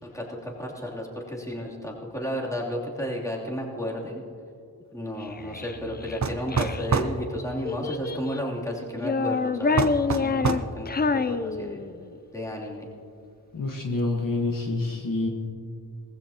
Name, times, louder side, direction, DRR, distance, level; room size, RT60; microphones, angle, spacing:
voice 1, 0.0-4.2 4.9-9.9 10.2-11.8 12.3-12.9, equal, 5° left, -4 dB, 3.0 m, -33 dB
Child speech kid speaking, 5.2-6.9 7.6-8.5 9.0-12.1, left 4 dB, 25° left, 0.4 m, -27 dB
sound 1, 6.2-7.2 9.8-10.7, right 5 dB, 40° right, 0.8 m, -25 dB
voice 2, 13.5-15.3, left 2 dB, 50° left, 0 dB, 1.4 m, -27 dB
19.0 x 15.0 x 2.9 m, 2.4 s
cardioid pair, 70°, 41 cm